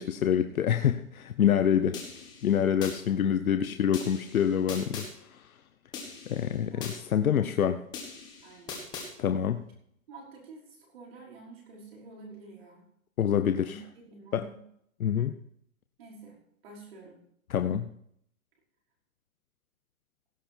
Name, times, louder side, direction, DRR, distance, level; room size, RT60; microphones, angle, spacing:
voice 1, 0.0-2.0 2.4-5.5 6.3-7.8 9.2-9.6 13.2-13.8 14.3-14.4 15.0-15.3 17.5-17.9, left 9 dB, 80° left, 8 dB, 1.0 m, -26 dB
sound 1, 1.9-3.0 3.9-5.1 5.9-7.0 7.9-9.1, left 5 dB, 10° left, 1.5 m, -41 dB
voice 2, 3.9-4.4 6.7-7.8 8.4-8.8 10.1-12.9 13.7-13.8 14.0-14.6 16.0-16.4 16.6-17.2, right 3 dB, 45° right, -2 dB, 5.3 m, -50 dB
17.0 x 8.0 x 4.6 m, 0.70 s
hypercardioid pair, 170°, 42 cm